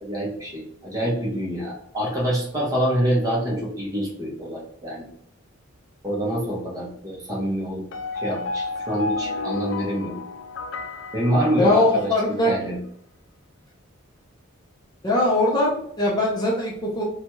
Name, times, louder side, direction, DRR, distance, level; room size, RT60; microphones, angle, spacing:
voice 1, 0.0-5.1 6.0-7.8 8.1-10.2 11.1-12.1 12.5-12.8, equal, 20° right, -3 dB, 0.9 m, -26 dB
sound 1, 7.9-12.2, left 3 dB, 65° left, 0.4 m, -31 dB
voice 2, 11.6-12.5 15.0-17.0, left 1 dB, 20° left, -4 dB, 0.6 m, -21 dB
2.8 x 2.3 x 2.9 m, 0.66 s
head